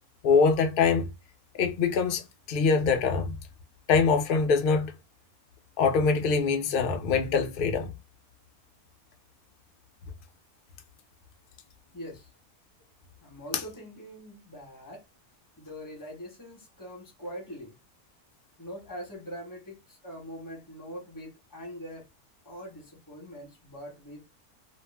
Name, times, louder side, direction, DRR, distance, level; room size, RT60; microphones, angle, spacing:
voice 1, 0.2-1.1 1.6-2.2 2.5-3.4 3.9-4.9 5.8-7.9 13.5-13.6, left 5 dB, 70° left, 0.5 m, -23 dB
voice 2, 11.9-12.3 13.2-15.0 15.6-17.7 18.6-22.1 22.4-24.2, equal, 15° left, 1.0 m, -43 dB
2.4 x 2.0 x 3.3 m
omnidirectional pair, 1.5 m